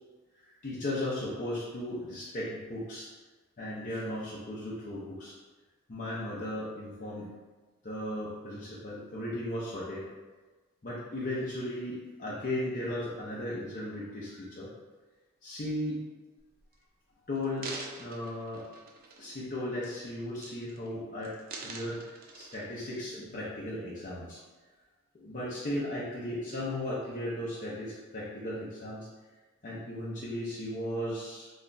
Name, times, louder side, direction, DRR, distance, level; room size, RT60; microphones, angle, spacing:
voice 1, 0.4-3.1 3.6-5.3 5.9-7.3 7.8-10.0 10.8-14.7 15.4-16.0 17.3-18.6 19.2-21.3 21.6-24.4 25.1-29.1 29.6-31.5, left 1 dB, 35° left, -9 dB, 0.6 m, -36 dB
sound 1, 16.4-16.7 17.4-19.5 19.8-20.1 20.4-20.9 21.2-23.0 23.5-23.6, right 3 dB, 40° right, 0.4 m, -45 dB
3.0 x 2.2 x 3.9 m, 1.3 s
head